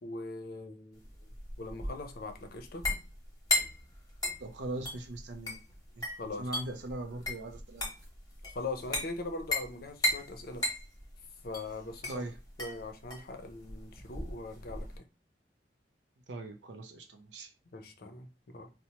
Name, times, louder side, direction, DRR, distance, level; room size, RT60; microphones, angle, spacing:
voice 1, 0.0-2.9 6.2-6.5 8.5-10.7 11.4-12.3 12.6-15.0 17.7-18.7, left 2 dB, 55° left, 0.6 m, -41 dB
sound 1, 1.0-15.0, left 1 dB, 20° left, 1.0 m, -36 dB
voice 2, 4.4-5.6 6.0-6.1 6.4-7.9 12.1-12.4 16.3-17.5, right 2 dB, 70° right, 0.5 m, -40 dB
4.2 x 2.1 x 2.8 m
head